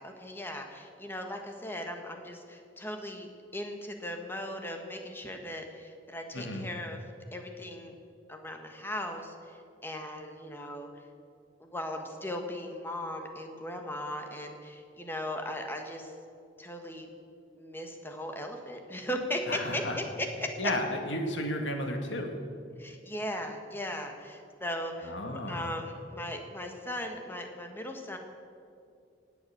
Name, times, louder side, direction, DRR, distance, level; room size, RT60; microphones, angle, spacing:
voice 1, 0.0-7.0 7.3-7.9 8.3-11.0 11.6-16.1 16.6-17.1 17.6-20.7 22.8-28.2, left 1 dB, 10° left, 4 dB, 1.5 m, -38 dB
voice 2, 6.3-6.7 19.5-20.0 20.6-22.3 25.0-25.7, left 1 dB, 90° left, 4 dB, 2.1 m, -33 dB
18.0 x 8.2 x 8.0 m, 2.4 s
head